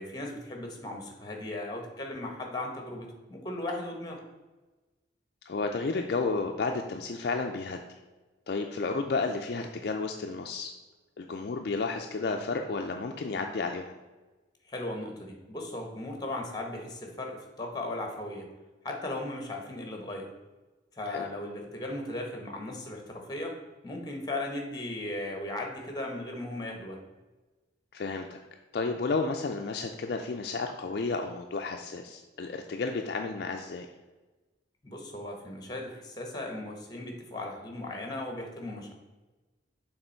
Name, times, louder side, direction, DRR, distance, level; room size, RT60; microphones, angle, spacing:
voice 1, 0.0-4.2 14.7-18.5 18.8-20.3 21.0-23.6 23.8-27.0 34.8-38.9, left 1 dB, 20° left, 2 dB, 0.9 m, -37 dB
voice 2, 5.5-7.8 8.5-10.7 11.2-13.9 21.1-21.2 27.9-28.4 28.7-33.9, left 3 dB, 55° left, 3 dB, 0.4 m, -32 dB
6.7 x 3.5 x 4.4 m, 1.2 s
head